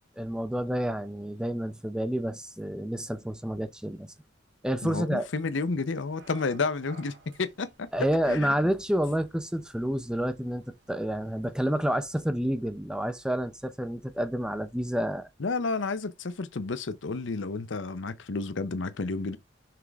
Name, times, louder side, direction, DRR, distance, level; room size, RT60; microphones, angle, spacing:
voice 1, 0.2-4.1 4.6-5.3 7.9-15.3, equal, 5° right, 0.5 m, -29 dB
voice 2, 4.8-7.9 8.3-8.5 15.4-19.4, left 3 dB, 80° left, 0.7 m, -31 dB
sound 1, 5.2-12.2, right 3 dB, 65° right, 2.6 m, -57 dB
5.9 x 4.7 x 3.5 m
head